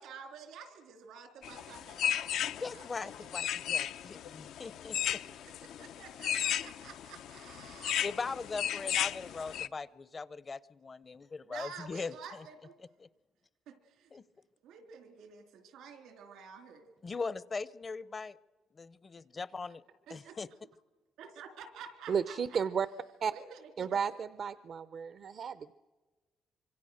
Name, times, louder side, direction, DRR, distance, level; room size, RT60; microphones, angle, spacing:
voice 1, 0.0-3.3 5.3-5.4 5.6-8.0 11.5-12.7 13.7-14.1 14.6-16.9 20.1-20.4 21.2-22.6 23.3-24.0, right 6 dB, 85° right, 7 dB, 3.5 m, -50 dB
sound 1, 1.4-9.7, left 10 dB, 85° left, 0.7 m, -35 dB
voice 2, 2.6-5.2 8.0-12.2 13.0-13.1 14.1-14.2 17.0-18.4 18.7-19.8 20.1-20.5, left 4 dB, 35° left, 19 dB, 0.7 m, -40 dB
voice 3, 22.1-22.9 23.2-23.3 23.8-25.7, right 7 dB, 55° right, 14 dB, 0.6 m, -33 dB
25.5 x 24.0 x 6.5 m, 1.3 s
cardioid pair, 90°, 0 cm